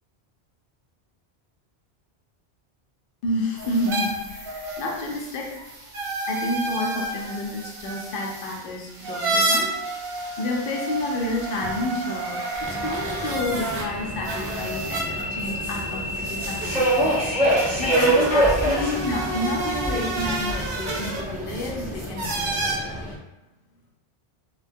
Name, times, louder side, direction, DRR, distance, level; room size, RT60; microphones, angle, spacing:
voice 1, 3.2-5.6 6.3-9.8 10.4-17.2 17.8-22.9, left 2 dB, 60° left, -1 dB, 0.7 m, -30 dB
sound 1, 3.5-13.8 14.2-22.7, right 2 dB, 60° right, 0.8 m, -30 dB
Subway metro underground, 12.6-23.1, right 1 dB, 5° right, 0.6 m, -26 dB
2.3 x 2.2 x 2.5 m, 0.99 s
omnidirectional pair, 1.1 m